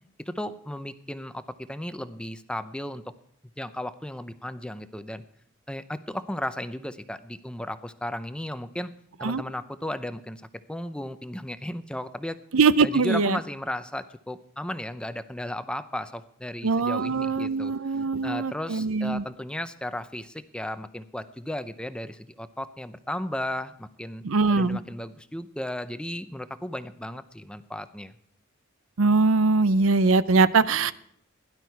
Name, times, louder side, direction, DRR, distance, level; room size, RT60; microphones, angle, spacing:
voice 1, 0.2-3.0 3.6-5.2 5.7-8.9 9.2-10.4 10.7-12.4 12.8-17.7 18.0-24.2 24.5-28.1, left 1 dB, 5° left, 11 dB, 0.6 m, -35 dB
voice 2, 12.5-13.4 16.6-19.2 24.2-24.8 29.0-30.9, right 4 dB, 90° right, 15 dB, 0.6 m, -22 dB
16.5 x 11.5 x 4.6 m, 0.67 s
head